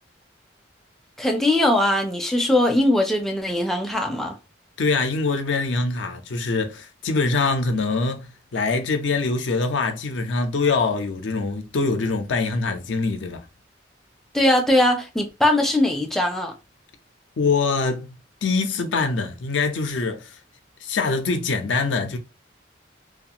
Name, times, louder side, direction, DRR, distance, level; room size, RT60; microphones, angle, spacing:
voice 1, 1.2-4.4 14.3-16.5, left 1 dB, ahead, 0.4 m, -20 dB
voice 2, 4.8-13.5 17.4-18.1 18.4-20.4 20.8-22.2, left 4 dB, 80° left, 0.5 m, -24 dB
2.4 x 2.3 x 2.7 m
head